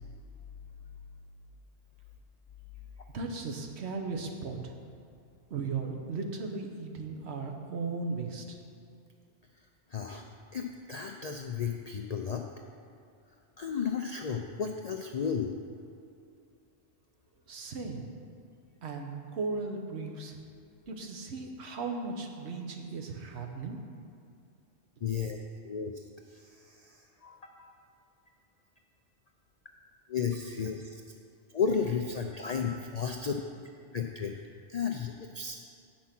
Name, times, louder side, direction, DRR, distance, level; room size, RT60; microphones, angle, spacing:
voice 1, 3.1-4.8 5.5-8.6 17.5-18.1 18.8-20.4 20.9-23.8, right 4 dB, 70° right, 3 dB, 1.2 m, -36 dB
voice 2, 9.6-10.3 10.5-12.4 13.6-15.5 25.0-25.4 25.6-27.8 30.1-31.0 31.5-34.4 34.7-35.7, left 6 dB, 60° left, 3 dB, 0.4 m, -34 dB
8.5 x 6.0 x 5.9 m, 2.5 s
omnidirectional pair, 1.2 m